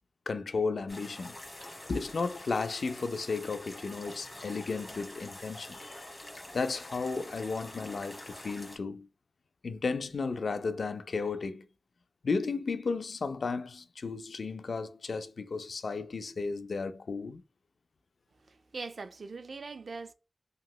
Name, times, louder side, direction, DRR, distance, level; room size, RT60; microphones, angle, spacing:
voice 1, 0.3-1.4 1.9-6.1 6.5-9.1 9.6-11.7 12.2-17.4, left 4 dB, 80° left, 0.3 m, -34 dB
sound 1, 0.9-8.8, left 1 dB, 30° left, 1.1 m, -46 dB
voice 2, 18.4-20.1, right 4 dB, 75° right, 0.3 m, -42 dB
2.9 x 2.9 x 2.2 m
wide cardioid pair, 65°, 0 cm